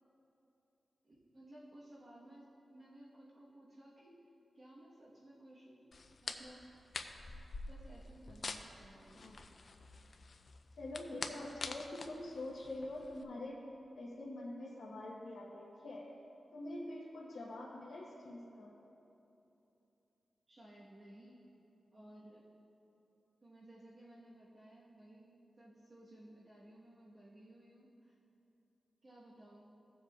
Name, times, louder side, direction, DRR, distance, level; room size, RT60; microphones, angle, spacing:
voice 1, 1.0-4.3 4.5-5.9 6.2-6.7 7.7-9.4 20.5-21.4 21.9-22.5 23.4-28.2 29.0-29.7, right 1 dB, 35° right, -7 dB, 1.2 m, -57 dB
sound 1, 5.9-13.2, left 3 dB, 45° left, 0.4 m, -47 dB
voice 2, 9.0-9.4 10.8-13.6 14.0-16.1 16.5-18.8, left 1 dB, 85° left, -5 dB, 1.0 m, -45 dB
16.0 x 7.3 x 2.4 m, 3.0 s
wide cardioid pair, 175°, 0 cm